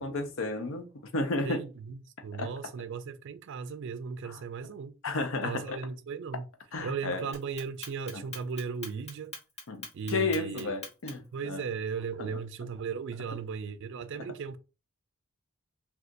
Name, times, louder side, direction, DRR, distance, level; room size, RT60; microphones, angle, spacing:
voice 1, 0.0-1.6 2.4-2.5 4.2-4.4 5.0-5.8 6.7-7.2 8.1-8.2 9.7-11.6 12.2-12.3, left 3 dB, 65° left, 0.6 m, -32 dB
voice 2, 1.4-4.9 5.4-6.5 6.8-9.3 9.9-10.8 11.3-14.6, right 5 dB, 60° right, 0.4 m, -37 dB
Clock, 7.3-11.3, left 2 dB, 30° left, 1.0 m, -42 dB
2.5 x 2.4 x 3.8 m
head